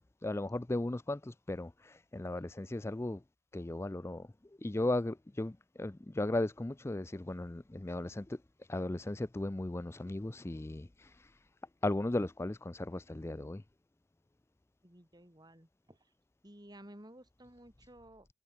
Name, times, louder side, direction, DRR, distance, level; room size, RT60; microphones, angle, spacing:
voice 1, 0.0-3.2 3.5-4.3 4.6-8.4 8.7-11.3 11.8-13.6, left 2 dB, 15° left, 0.4 m, -36 dB
voice 2, 14.8-16.1 16.4-18.3, right 1 dB, 20° right, 3.5 m, -55 dB
head